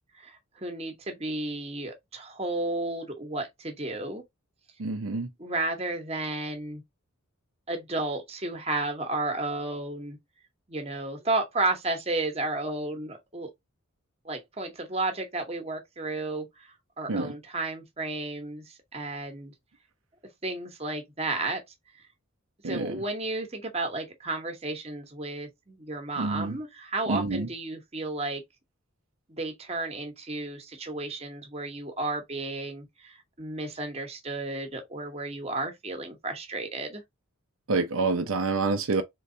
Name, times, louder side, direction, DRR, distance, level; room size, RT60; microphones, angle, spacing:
voice 1, 0.2-4.2 5.4-6.8 7.7-10.2 10.7-13.5 14.2-19.5 20.4-21.6 22.6-28.4 29.3-37.0, right 2 dB, 30° right, 1.1 m, -33 dB
voice 2, 4.8-5.3 17.1-17.3 22.6-23.0 26.2-26.6 27.1-27.5 37.7-39.0, right 3 dB, 70° right, 0.6 m, -27 dB
3.9 x 3.4 x 2.7 m
head